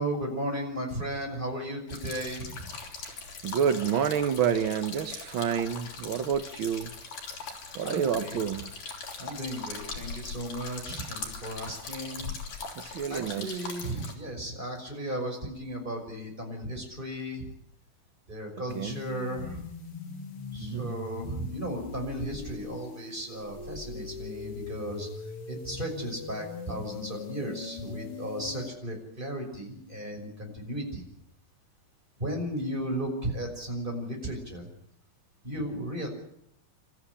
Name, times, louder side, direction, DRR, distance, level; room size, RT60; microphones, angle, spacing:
voice 1, 0.0-2.7 7.8-8.4 9.2-12.3 13.1-17.5 18.3-19.7 20.5-31.0 32.2-34.7 35.4-36.1, right 1 dB, 15° right, 2 dB, 6.0 m, -35 dB
sound 1, 1.9-14.1, left 4 dB, 70° left, 5.3 m, -40 dB
voice 2, 3.1-6.9 7.7-8.7 12.8-13.7 18.7-19.0 20.6-20.9, right 8 dB, 80° right, 9 dB, 1.1 m, -29 dB
sound 2, 18.7-28.7, left 5 dB, 45° left, 2.6 m, -41 dB
28.0 x 14.0 x 10.0 m, 0.73 s
omnidirectional pair, 3.9 m